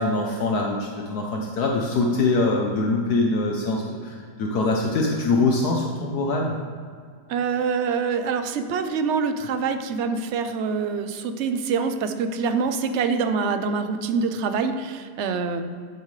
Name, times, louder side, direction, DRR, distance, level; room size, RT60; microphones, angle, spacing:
voice 1, 0.0-6.5, left 2 dB, 65° left, 0 dB, 1.3 m, -23 dB
voice 2, 7.3-15.6, right 5 dB, 60° right, 8 dB, 0.8 m, -25 dB
11.0 x 8.2 x 3.2 m, 2.1 s
omnidirectional pair, 1.9 m